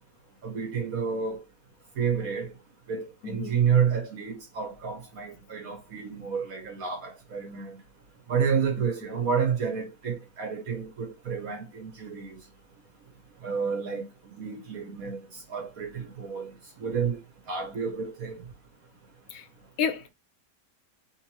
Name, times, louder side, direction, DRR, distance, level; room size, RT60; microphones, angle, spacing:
voice 1, 0.4-1.4 2.0-2.5 2.9-7.8 8.3-12.4 13.4-16.5 16.8-17.2 17.5-18.4, right 6 dB, 65° right, 1.5 m, -30 dB
voice 2, 3.2-3.6 8.8-8.9 19.3-19.5 19.8-20.1, left 7 dB, 70° left, 1.0 m, -30 dB
4.4 x 3.6 x 3.0 m
omnidirectional pair, 1.7 m